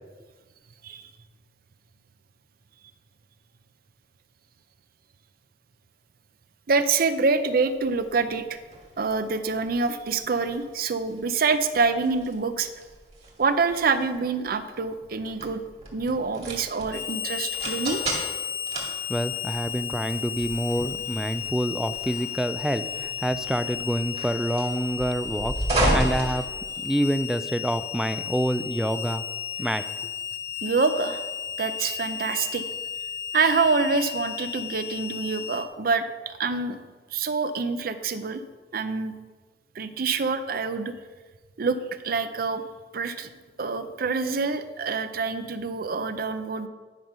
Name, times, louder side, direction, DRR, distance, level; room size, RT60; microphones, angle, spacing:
voice 1, 6.7-8.6 9.0-12.7 13.4-15.6 15.9-18.0 30.6-31.3 31.6-32.7 33.3-36.8 37.1-38.4 38.7-39.1 39.7-40.9 41.6-41.8 42.0-42.6 42.9-43.3 43.6-46.7, right 4 dB, 55° right, 11 dB, 0.6 m, -26 dB
sound 1, 7.8-27.2, right 1 dB, 40° right, 2.1 m, -33 dB
Harmonica, 16.9-35.7, left 9 dB, 60° left, 0.6 m, -34 dB
voice 2, 19.1-26.5 26.8-29.2 29.6-29.8, equal, 5° right, 11 dB, 0.3 m, -27 dB
10.5 x 5.3 x 5.5 m, 1.4 s
head